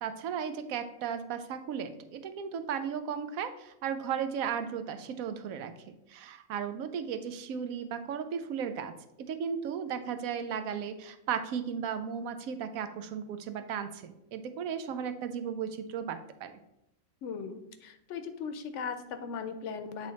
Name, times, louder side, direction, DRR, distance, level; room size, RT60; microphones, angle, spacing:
voice 1, 0.0-5.7 6.1-16.5, right 7 dB, 90° right, 10 dB, 1.1 m, -35 dB
voice 2, 17.2-20.1, left 6 dB, 65° left, 9 dB, 0.9 m, -38 dB
8.2 x 3.3 x 4.0 m, 0.85 s
omnidirectional pair, 1.4 m